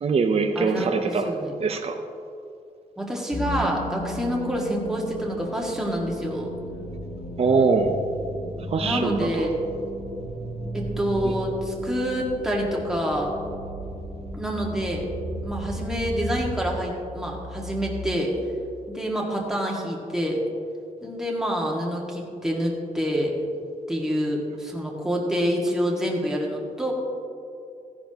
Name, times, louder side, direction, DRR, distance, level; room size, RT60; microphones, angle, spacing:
voice 1, 0.0-1.3 1.6-2.0 7.4-7.9 8.7-9.5 11.2-11.3, right 4 dB, 45° right, 4 dB, 0.7 m, -22 dB
voice 2, 0.6-1.5 3.0-6.5 8.8-9.5 10.7-13.3 14.3-15.1 15.4-18.3 18.9-20.4 21.0-23.3 23.9-26.9, equal, 5° right, -3 dB, 1.8 m, -27 dB
sound 1, 3.3-18.2, equal, 80° left, 2.0 m, -35 dB
16.0 x 10.5 x 2.9 m, 2.6 s
wide cardioid pair, 140°, 15 cm